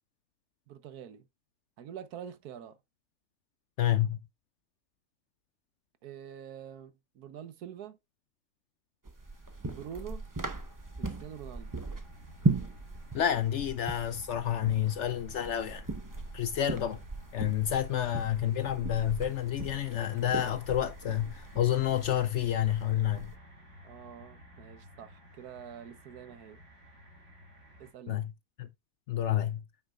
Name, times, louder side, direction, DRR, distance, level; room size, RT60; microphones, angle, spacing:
voice 1, 0.7-1.3 1.8-2.8 6.0-8.0 9.7-10.2 11.0-11.7 23.8-26.6 27.8-28.2, right 9 dB, 80° right, 1.4 m, -46 dB
voice 2, 3.8-4.2 13.1-15.8 16.3-17.0 17.3-23.3 28.1-28.3 28.6-28.7 29.1-29.6, left 11 dB, 65° left, 0.7 m, -29 dB
sound 1, 9.1-23.4, right 3 dB, 15° right, 0.7 m, -38 dB
sound 2, 9.1-27.9, left 1 dB, 50° right, 2.6 m, -53 dB
9.4 x 6.1 x 2.4 m
omnidirectional pair, 1.6 m